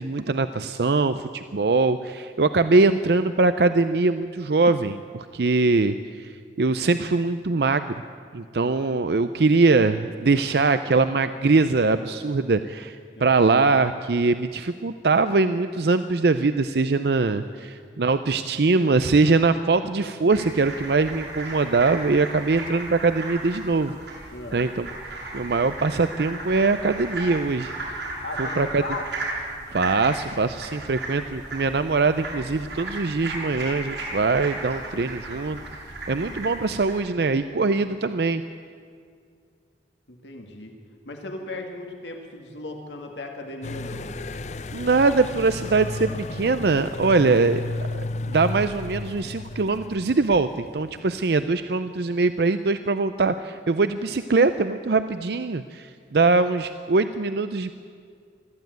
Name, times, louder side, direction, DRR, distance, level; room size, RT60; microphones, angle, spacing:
voice 1, 0.0-6.3 6.6-8.0 8.3-13.0 13.2-23.9 24.5-24.9 25.3-27.7 28.4-28.8 29.7-35.6 36.1-38.4 44.7-47.6 48.3-57.7, right 3 dB, 65° right, 11 dB, 0.6 m, -22 dB
voice 2, 13.2-14.0 18.0-18.1 24.3-24.7 28.2-29.1 40.1-40.8 41.1-44.3, left 2 dB, 90° left, 3 dB, 2.1 m, -37 dB
sound 1, 20.3-37.0, right 2 dB, 85° right, 7.7 m, -35 dB
sound 2, 43.6-51.2, left 2 dB, 40° left, 0.6 m, -33 dB
21.5 x 14.0 x 9.3 m, 2.2 s
head